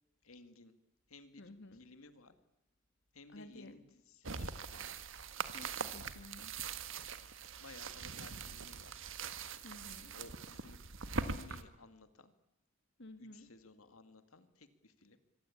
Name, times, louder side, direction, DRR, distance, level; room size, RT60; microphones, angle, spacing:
voice 1, 0.2-0.7 1.1-2.3 3.1-4.9 7.6-9.0 10.1-10.8 11.2-12.3 13.2-15.2, left 3 dB, 80° left, 10 dB, 2.2 m, -57 dB
voice 2, 1.4-1.8 3.3-3.8 5.5-6.6 9.6-10.2 13.0-13.5, left 1 dB, 60° left, 9 dB, 2.7 m, -53 dB
Walking through grass, 4.2-11.6, right 5 dB, 65° right, 1.7 m, -42 dB
26.0 x 24.5 x 8.6 m, 0.91 s
head